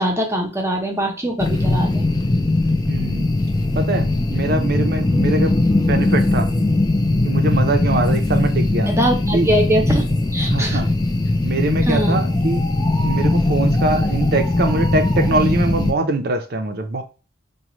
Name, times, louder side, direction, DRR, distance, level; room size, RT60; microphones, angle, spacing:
voice 1, 0.0-2.1 8.9-10.0 10.3-10.8 11.9-12.2, right 1 dB, 15° right, 2 dB, 0.7 m, -21 dB
sound 1, 1.4-15.9, left 2 dB, 20° left, 0.5 m, -19 dB
voice 2, 2.9-3.4 3.8-6.5 7.2-8.9 9.3-9.5 10.4-10.9 11.4-12.6 13.0-17.0, right 2 dB, 60° right, 7 dB, 0.6 m, -23 dB
5.0 x 2.2 x 3.0 m, 0.34 s
head